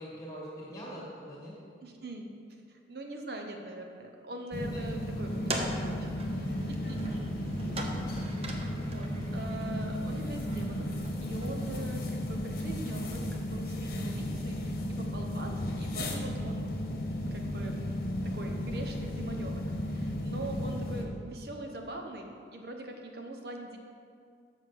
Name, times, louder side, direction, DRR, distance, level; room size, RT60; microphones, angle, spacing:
voice 1, 0.0-1.5 4.6-4.8 6.9-8.0, equal, 20° left, -5 dB, 2.0 m, -43 dB
voice 2, 1.8-2.3 2.7-7.0 8.1-10.9 11.2-16.7 17.1-17.8 18.2-23.8, right 1 dB, 60° right, 3 dB, 1.0 m, -43 dB
sound 1, 4.5-21.1, left 1 dB, 50° left, 1.1 m, -34 dB
sound 2, 5.3-12.0, right 2 dB, 35° right, 0.8 m, -42 dB
7.3 x 6.3 x 6.1 m, 2.3 s
head